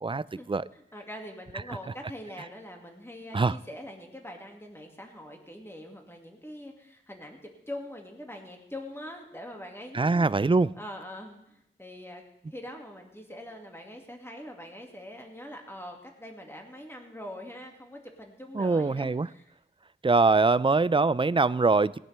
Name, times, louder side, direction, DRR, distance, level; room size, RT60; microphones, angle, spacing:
voice 1, 0.0-0.7 1.7-1.8 3.3-3.6 9.9-10.7 18.5-19.3 20.0-22.0, right 3 dB, 25° right, 0.3 m, -23 dB
voice 2, 0.7-10.3 10.8-12.2 12.5-19.5, left 1 dB, 10° left, 2.2 m, -43 dB
19.0 x 10.5 x 3.4 m
wide cardioid pair, 50°, 21 cm